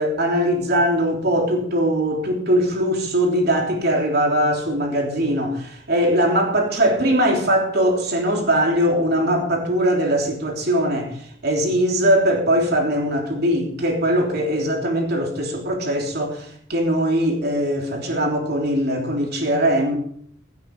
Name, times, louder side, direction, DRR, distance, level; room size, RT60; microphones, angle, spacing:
voice 1, 0.0-11.1 11.4-20.0, equal, 55° right, 1 dB, 3.3 m, -21 dB
16.5 x 8.4 x 5.3 m, 0.63 s
head